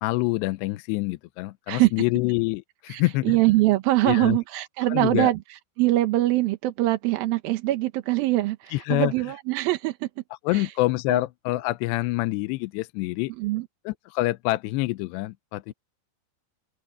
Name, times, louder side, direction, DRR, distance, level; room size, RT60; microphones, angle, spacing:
voice 1, 0.0-3.4 4.0-4.4 4.9-5.3 8.7-9.1 10.4-13.3 13.9-15.7, left 19 dB, 85° left, 2.7 m, -26 dB
voice 2, 2.9-5.4 5.8-10.1 10.5-10.7 11.1-11.2 13.4-13.7, right 17 dB, 70° right, 2.4 m, -23 dB
open air
omnidirectional pair, 5.0 m